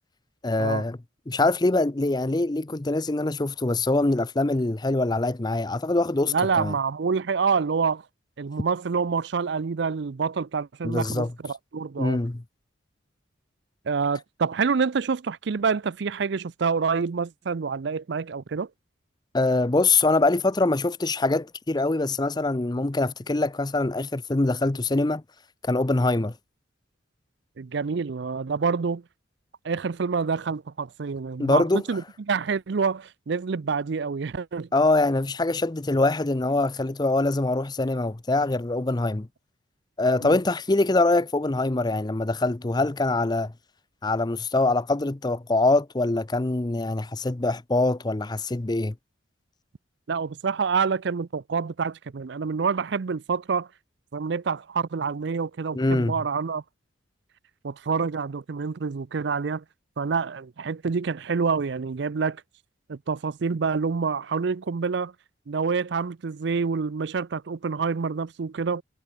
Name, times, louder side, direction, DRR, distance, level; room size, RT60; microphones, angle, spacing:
voice 1, 0.4-1.0 1.3-6.7 10.8-11.3 12.0-12.4 19.3-25.2 25.6-26.3 31.4-31.8 34.7-39.3 40.0-43.5 44.0-48.9 55.7-56.1, left 2 dB, 20° left, 0.6 m, -24 dB
voice 2, 6.2-8.0 8.4-12.2 13.9-18.7 27.6-29.0 29.6-32.0 32.3-34.7 40.2-40.4 50.1-53.7 54.1-56.6 57.6-59.6 60.0-62.4 62.9-65.1 65.5-68.8, right 5 dB, 60° right, 0.5 m, -27 dB
head